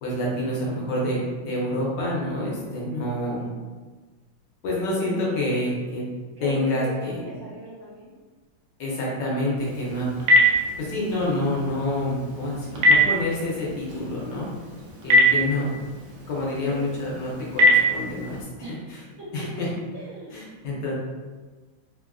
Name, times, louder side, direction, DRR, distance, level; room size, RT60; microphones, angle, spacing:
voice 1, 0.0-3.5 4.6-6.0 6.4-7.2 8.8-10.1 10.8-14.5 15.0-15.7 16.3-18.4 18.7-19.0 19.3-19.7 20.3-20.9, left 1 dB, 70° left, -5 dB, 1.2 m, -27 dB
voice 2, 2.9-3.4 6.4-8.1 16.6-16.9 18.6-18.8 19.2-19.4 19.9-20.3, right 2 dB, 60° right, -11 dB, 1.0 m, -38 dB
Telephone, 9.6-18.4, equal, 80° right, 1.3 m, -24 dB
3.5 x 2.3 x 2.3 m, 1.4 s
omnidirectional pair, 2.2 m